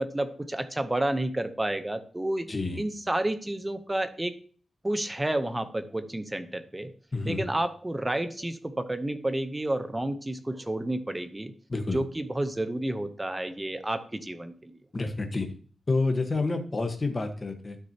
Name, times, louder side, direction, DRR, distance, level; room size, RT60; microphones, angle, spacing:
voice 1, 0.0-2.5 2.8-4.4 4.8-6.9 7.2-11.5 11.9-14.8, right 1 dB, 15° right, 10 dB, 0.8 m, -30 dB
voice 2, 2.5-2.8 7.1-7.4 11.7-12.0 14.9-15.5 15.9-17.8, left 3 dB, 30° left, 5 dB, 1.2 m, -28 dB
12.0 x 6.4 x 2.9 m, 0.42 s
wide cardioid pair, 130°, 0 cm